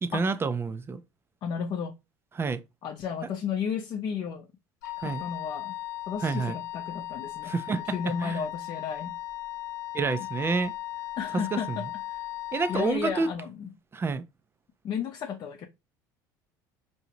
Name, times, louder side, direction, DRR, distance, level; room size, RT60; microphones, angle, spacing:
voice 1, 0.0-1.0 2.4-2.6 5.0-5.2 6.2-6.6 7.5-7.8 8.2-8.4 9.9-10.7 11.5-11.8 12.5-13.3 13.9-14.2, right 4 dB, 25° right, 0.5 m, -28 dB
voice 2, 1.4-2.0 2.8-4.5 5.0-5.7 6.1-9.1 11.2-12.2 12.7-13.7 14.8-15.7, left 7 dB, 50° left, 0.7 m, -33 dB
Wind instrument woodwind instrument, 4.8-13.0, left 15 dB, 90° left, 0.5 m, -37 dB
4.7 x 2.7 x 2.9 m
supercardioid pair, 90°, 10 cm